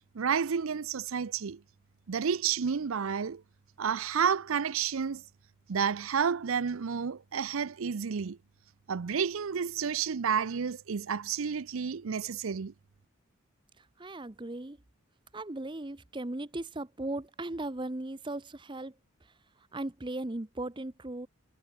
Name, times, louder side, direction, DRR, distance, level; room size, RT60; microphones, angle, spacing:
voice 1, 0.1-1.6 2.1-3.4 3.8-5.2 5.7-8.4 8.9-12.7, right 7 dB, 75° right, 0.5 m, -30 dB
voice 2, 13.8-14.8 15.3-18.9 19.7-21.3, right 2 dB, 25° right, 0.8 m, -37 dB
head